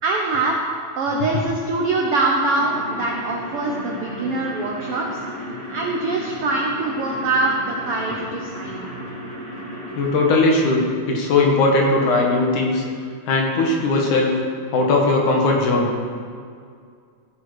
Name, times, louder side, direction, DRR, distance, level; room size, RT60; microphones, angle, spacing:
voice 1, 0.0-0.6 1.0-5.2 5.7-8.9, right 2 dB, 85° right, -1 dB, 1.2 m, -23 dB
sound 1, 2.4-10.4, equal, 5° left, 3.1 m, -34 dB
voice 2, 10.0-12.8 13.3-14.3 14.7-15.9, left 2 dB, 60° left, 0 dB, 2.8 m, -18 dB
15.5 x 9.5 x 4.9 m, 2.2 s
omnidirectional pair, 4.2 m